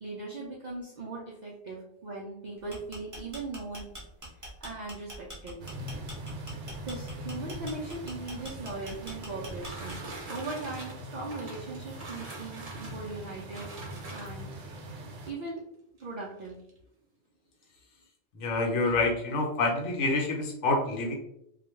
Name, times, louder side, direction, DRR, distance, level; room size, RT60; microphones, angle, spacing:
voice 1, 0.0-3.9 4.6-5.6 6.8-13.7 14.1-14.5 15.3-15.6 16.0-16.6, right 3 dB, 65° right, -4 dB, 0.4 m, -39 dB
sound 1, 2.6-10.2, right 1 dB, 20° right, 0.6 m, -44 dB
sound 2, 5.6-15.3, right 1 dB, 90° right, 0.9 m, -42 dB
sound 3, 8.5-14.6 15.5-15.6 16.0-16.1 16.4-16.8, right 2 dB, 50° right, 0.8 m, -45 dB
voice 2, 18.3-21.1, left 3 dB, 75° left, 0 dB, 1.0 m, -27 dB
2.3 x 2.2 x 3.0 m, 0.76 s
omnidirectional pair, 1.2 m